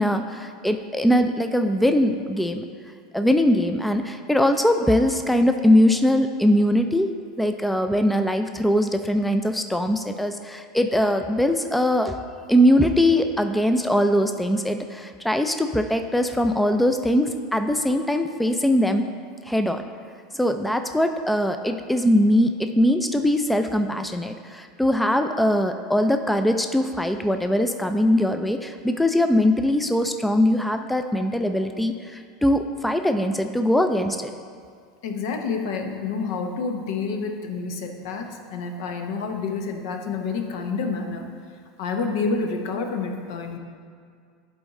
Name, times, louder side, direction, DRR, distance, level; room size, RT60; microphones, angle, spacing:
voice 1, 0.0-2.6 3.1-12.2 12.5-19.0 19.5-19.8 20.3-34.3, left 1 dB, 5° left, 7 dB, 0.4 m, -21 dB
voice 2, 35.0-41.3 41.8-43.6, left 4 dB, 70° left, 4 dB, 0.8 m, -28 dB
11.0 x 4.3 x 3.6 m, 2.1 s
hypercardioid pair, 95°, 2 cm